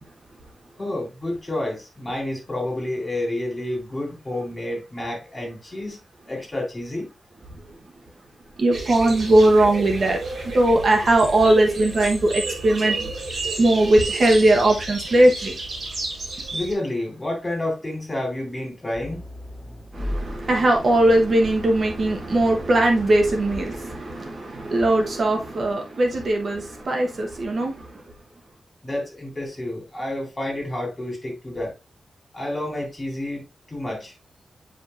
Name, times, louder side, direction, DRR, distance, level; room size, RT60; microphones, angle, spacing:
voice 1, 0.8-6.0 6.2-7.1 16.5-19.2 28.8-31.7 32.3-34.1, left 1 dB, 15° left, 3.4 m, -29 dB
voice 2, 8.6-10.2 10.5-13.1 13.6-15.5 19.9-27.7, right 1 dB, 40° right, 1.1 m, -19 dB
sound 1, 8.7-16.7, right 3 dB, 60° right, 3.8 m, -31 dB
Accelerating revving vroom, 18.9-24.4, equal, 20° right, 3.3 m, -37 dB
8.5 x 5.1 x 2.5 m
wide cardioid pair, 175°, 0 cm